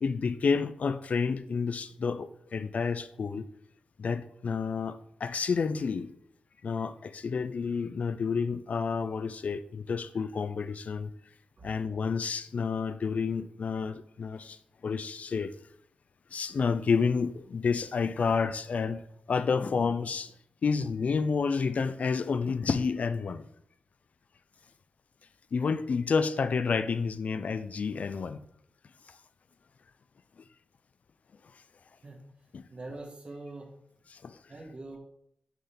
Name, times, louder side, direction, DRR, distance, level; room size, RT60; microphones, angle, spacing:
voice 1, 0.0-3.5 4.0-6.1 6.6-11.1 11.6-14.6 14.8-15.5 16.3-19.0 19.3-20.3 20.6-23.4 25.5-28.5 32.5-32.6 34.1-34.4, left 5 dB, 60° left, 12 dB, 0.4 m, -30 dB
voice 2, 32.7-33.7 34.5-35.0, right 2 dB, 40° right, -2 dB, 1.9 m, -43 dB
10.5 x 3.9 x 3.4 m, 0.72 s
wide cardioid pair, 120°, 3 cm